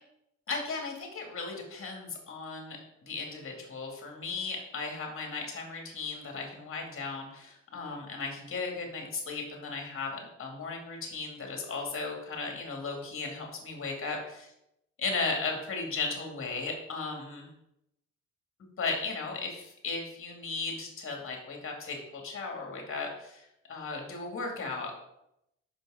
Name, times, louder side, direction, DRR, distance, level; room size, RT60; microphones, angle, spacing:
voice 1, 0.5-14.2 15.0-17.5 18.8-24.9, left 4 dB, 45° left, 1 dB, 2.4 m, -36 dB
5.9 x 5.2 x 5.0 m, 0.82 s
cardioid pair, 90°, 30 cm